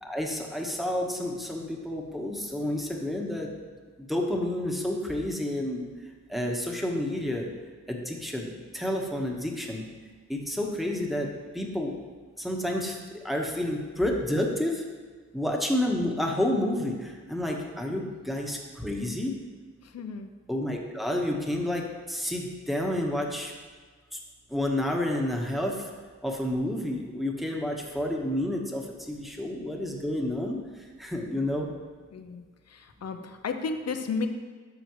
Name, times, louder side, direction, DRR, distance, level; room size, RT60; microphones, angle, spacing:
voice 1, 0.0-3.5 4.0-5.9 6.3-7.5 7.9-9.8 10.3-11.9 12.4-14.8 15.3-19.4 20.5-23.5 24.1-24.2 24.5-25.9 26.2-30.6 31.0-31.7, left 1 dB, ahead, 0 dB, 1.4 m, -30 dB
voice 2, 19.8-20.3 31.3-31.5 32.1-34.3, left 4 dB, 55° left, 7 dB, 0.7 m, -34 dB
12.0 x 6.3 x 3.2 m, 1.5 s
cardioid pair, 70°, 30 cm